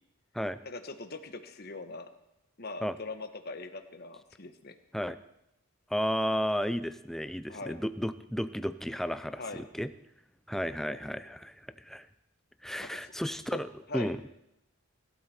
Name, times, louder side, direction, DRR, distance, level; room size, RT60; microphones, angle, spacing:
voice 1, 0.6-2.1 2.6-4.7 7.5-7.8 9.4-9.6 12.8-13.1 13.5-13.6 13.9-14.1, left 2 dB, 45° left, 7 dB, 1.3 m, -41 dB
voice 2, 5.9-9.9 10.5-12.1 12.6-13.7 13.9-14.2, equal, ahead, 12 dB, 0.5 m, -33 dB
24.0 x 12.5 x 4.4 m, 0.84 s
head